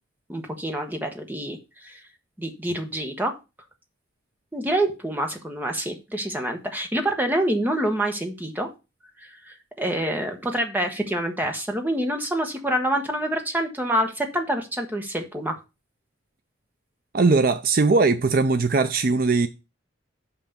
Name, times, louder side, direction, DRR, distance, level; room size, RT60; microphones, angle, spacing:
voice 1, 0.3-2.0 2.4-3.3 4.5-8.7 9.2-15.6, right 1 dB, 10° right, 1.2 m, -27 dB
voice 2, 17.1-19.5, right 3 dB, 45° right, 0.5 m, -20 dB
5.8 x 5.8 x 6.7 m
head